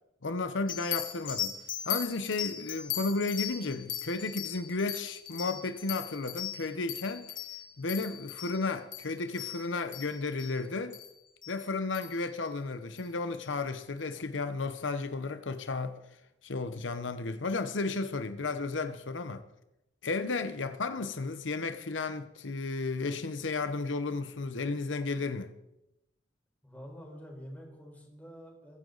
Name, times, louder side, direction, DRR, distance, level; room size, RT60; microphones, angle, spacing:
voice 1, 0.2-1.5 1.9-7.3 7.8-11.0 11.5-16.0 16.4-19.4 20.0-25.5, left 3 dB, 85° left, 0.9 m, -33 dB
sound 1, 0.7-10.5 10.9-11.1 11.4-11.5 11.9-12.2 13.0-13.1, left 10 dB, 45° left, 2.4 m, -38 dB
voice 2, 20.4-20.8 26.6-28.8, equal, 10° left, 4.7 m, -48 dB
23.0 x 10.0 x 4.0 m
head